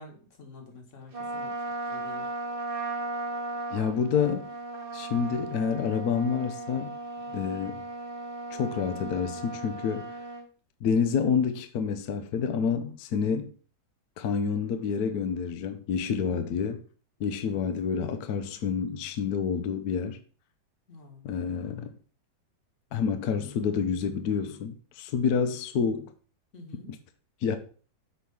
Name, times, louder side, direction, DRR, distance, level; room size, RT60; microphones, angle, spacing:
voice 1, 0.0-1.5 1.8-2.3 7.3-7.5 17.5-17.6 20.9-21.2 26.5-26.9, left 2 dB, 45° left, 1.6 m, -48 dB
Trumpet, 1.1-10.5, right 2 dB, 35° right, 1.2 m, -36 dB
voice 2, 3.7-4.5 4.9-6.9 7.3-7.8 8.5-10.1 10.8-13.5 14.2-16.8 17.2-20.2 21.2-21.9 22.9-26.1 27.4-27.6, left 6 dB, 65° left, 1.1 m, -28 dB
8.3 x 3.1 x 5.5 m
omnidirectional pair, 2.1 m